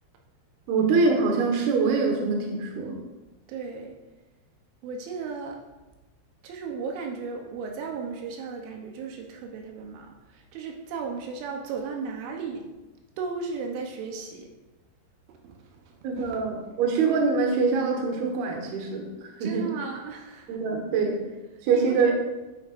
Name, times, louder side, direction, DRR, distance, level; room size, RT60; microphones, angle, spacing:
voice 1, 0.7-3.0 16.0-19.7 20.5-21.2 21.6-22.1, right 4 dB, 65° right, 1 dB, 3.0 m, -24 dB
voice 2, 3.5-4.0 4.8-5.6 6.4-12.7 13.2-14.5 15.3-16.4 19.4-20.6 21.7-22.1, right 5 dB, 85° right, 2 dB, 3.3 m, -35 dB
11.5 x 9.8 x 2.5 m, 1.1 s
omnidirectional pair, 5.4 m